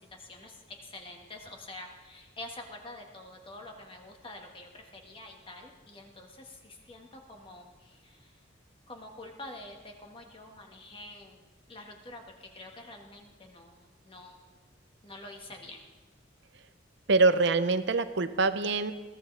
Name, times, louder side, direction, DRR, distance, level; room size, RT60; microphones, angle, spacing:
voice 1, 0.0-8.5 8.9-11.4 11.7-14.6 15.0-15.8, left 2 dB, 30° left, 1 dB, 1.7 m, -47 dB
voice 2, 17.1-18.9, right 3 dB, 65° right, 11 dB, 0.8 m, -24 dB
21.5 x 15.5 x 3.4 m, 1.3 s
head